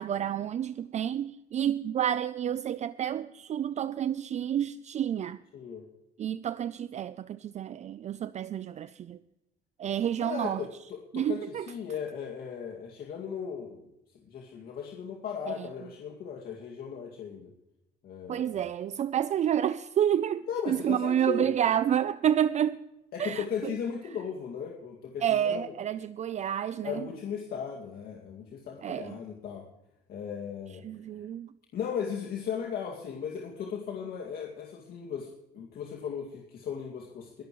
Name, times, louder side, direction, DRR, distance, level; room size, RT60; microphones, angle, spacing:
voice 1, 0.0-5.4 6.2-9.2 9.8-10.7 11.1-11.7 15.4-15.7 18.3-22.8 23.2-23.4 25.2-27.0 28.8-29.2 30.8-31.5, right 10 dB, 45° right, 0.5 m, -29 dB
voice 2, 5.5-5.8 10.2-13.8 14.3-17.5 18.0-18.6 20.5-21.5 23.1-25.7 26.8-29.7 30.1-30.8 31.7-37.4, left 7 dB, 65° left, 2.3 m, -37 dB
23.0 x 12.0 x 3.1 m
cardioid pair, 110°, 17 cm